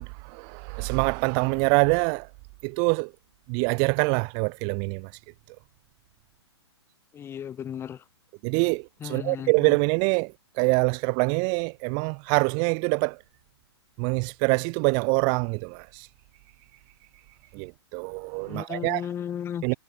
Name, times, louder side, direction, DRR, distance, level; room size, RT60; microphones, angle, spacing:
voice 1, 0.0-2.3 2.6-3.1 3.5-5.1 8.4-13.2 14.0-16.1 17.5-19.0 19.6-19.7, right 40 dB or more, 30° right, 0.4 m, -25 dB
voice 2, 7.1-8.0 9.0-9.8 18.4-19.7, left 9 dB, 15° left, 1.4 m, -35 dB
hypercardioid pair, 125°, 14 cm